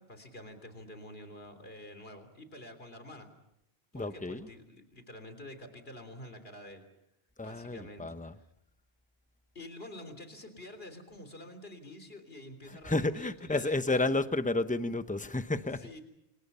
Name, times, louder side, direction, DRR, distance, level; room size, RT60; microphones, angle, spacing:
voice 1, 0.0-3.3 3.9-6.9 7.4-8.3 9.6-14.2 15.8-16.0, left 1 dB, 65° left, 8 dB, 3.8 m, -48 dB
voice 2, 3.9-4.5 7.4-8.4 12.7-15.8, left 2 dB, 10° left, 10 dB, 0.9 m, -31 dB
29.5 x 26.0 x 5.6 m, 0.82 s
omnidirectional pair, 1.1 m